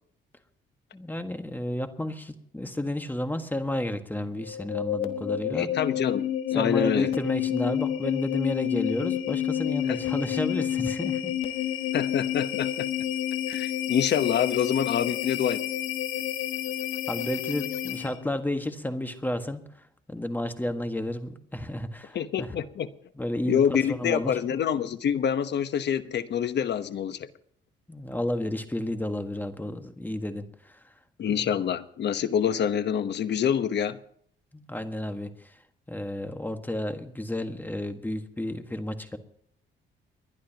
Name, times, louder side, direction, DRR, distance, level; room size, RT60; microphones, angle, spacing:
voice 1, 0.9-5.7 6.5-11.3 17.1-19.6 20.1-22.5 23.2-23.6 23.9-24.4 27.9-30.7 31.3-31.4 34.5-35.3 35.9-39.2, left 1 dB, 10° left, 7 dB, 1.5 m, -31 dB
sound 1, 4.4-18.3, left 11 dB, 90° left, 1.3 m, -29 dB
voice 2, 5.5-7.1 9.9-10.0 11.9-12.9 13.5-15.6 22.1-22.9 23.4-27.3 31.2-34.0, left 8 dB, 60° left, 12 dB, 1.1 m, -26 dB
29.5 x 11.0 x 2.9 m, 0.69 s
cardioid pair, 90°, 20 cm